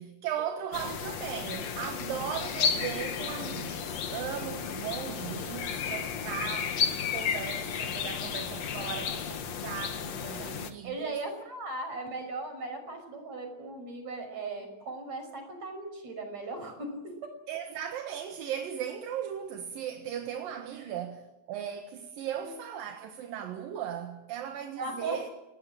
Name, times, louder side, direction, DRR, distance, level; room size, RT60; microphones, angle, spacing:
voice 1, 0.0-6.9 7.1-11.1 17.5-25.3, right 9 dB, 75° right, 3.2 m, -37 dB
sound 1, 0.7-10.7, left 7 dB, 55° left, 2.4 m, -33 dB
voice 2, 10.8-17.4 20.8-20.9 22.4-22.6 24.8-25.3, right 3 dB, 50° right, 7.1 m, -38 dB
28.5 x 19.0 x 8.9 m
omnidirectional pair, 4.1 m